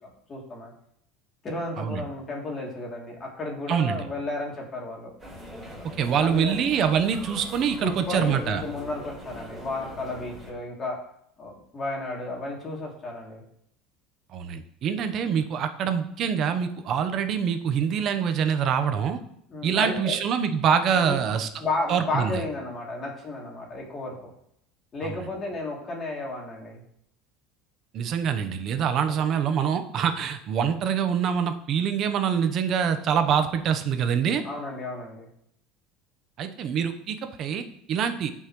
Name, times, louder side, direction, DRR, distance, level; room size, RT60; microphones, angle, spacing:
voice 1, 0.0-0.7 1.4-5.1 5.7-5.8 6.2-6.6 7.8-11.0 11.4-13.4 19.5-20.2 20.9-21.2 21.6-24.3 24.9-26.8 29.1-29.3 34.4-35.3, left 2 dB, 30° left, -2 dB, 3.0 m, -33 dB
voice 2, 3.7-4.1 6.0-8.6 14.3-19.2 19.6-21.5 21.9-22.4 25.0-25.2 27.9-34.4 36.4-38.3, right 7 dB, 45° right, 8 dB, 1.0 m, -25 dB
sound 1, 5.2-10.5, equal, 10° right, 4.5 m, -42 dB
17.0 x 5.6 x 3.2 m, 0.72 s
supercardioid pair, 120°, 0 cm